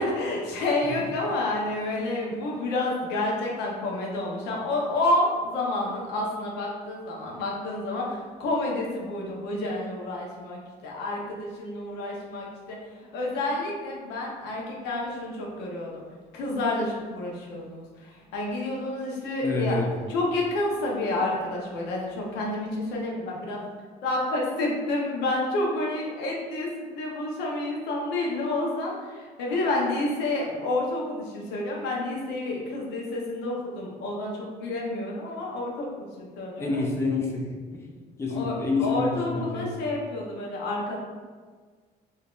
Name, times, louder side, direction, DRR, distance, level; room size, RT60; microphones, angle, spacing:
voice 1, 0.0-12.8 13.1-16.0 16.3-17.8 18.3-19.8 20.1-23.6 24.0-36.8 38.3-41.0, left 2 dB, 90° left, -2 dB, 0.8 m, -29 dB
voice 2, 19.4-19.9 36.6-37.8 38.2-39.7, left 3 dB, 15° left, -1 dB, 0.5 m, -28 dB
3.7 x 2.6 x 2.4 m, 1.5 s
cardioid pair, 110°, 17 cm